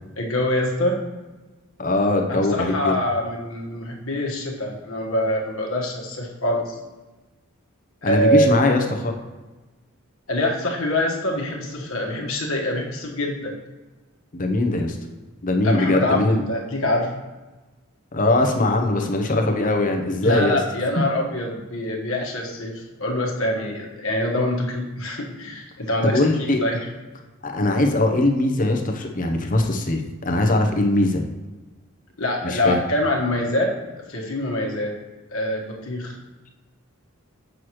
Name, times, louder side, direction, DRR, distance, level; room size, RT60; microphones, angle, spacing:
voice 1, 0.2-1.0 2.3-6.8 8.0-8.6 10.3-13.5 15.6-17.2 20.2-26.8 32.2-33.8 34.1-34.9 35.3-36.2, left 1 dB, 70° left, -1 dB, 1.4 m, -24 dB
voice 2, 1.8-2.9 8.0-9.1 14.3-15.0 15.4-16.4 18.1-20.6 26.0-26.6 27.4-31.3 32.4-32.8, left 2 dB, 40° left, 4 dB, 0.8 m, -21 dB
7.8 x 6.3 x 3.1 m, 1.2 s
head